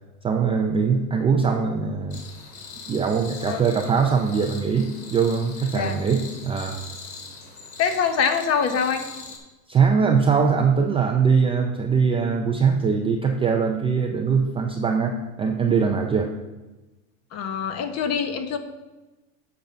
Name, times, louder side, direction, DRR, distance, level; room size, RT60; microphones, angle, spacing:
voice 1, 0.2-2.2 2.9-6.8 9.7-16.3, right 5 dB, 15° right, 2 dB, 0.4 m, -22 dB
sound 1, 2.1-9.4, left 4 dB, 60° left, 2.6 m, -41 dB
voice 2, 7.8-9.0 17.3-18.6, left 6 dB, 35° left, 8 dB, 1.0 m, -24 dB
8.3 x 5.3 x 5.7 m, 1.1 s
hypercardioid pair, 110°, 46 cm